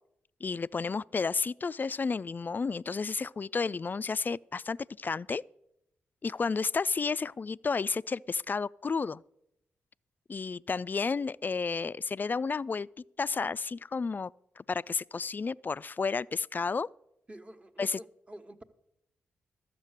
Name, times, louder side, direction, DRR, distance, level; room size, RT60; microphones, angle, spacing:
voice 1, 0.4-5.4 6.2-9.2 10.3-12.9 13.2-16.9 17.8-18.0, left 4 dB, 35° left, 0.3 m, -32 dB
voice 2, 17.3-18.6, equal, 20° right, 1.2 m, -48 dB
12.5 x 7.4 x 6.5 m
supercardioid pair, 45°, 5 cm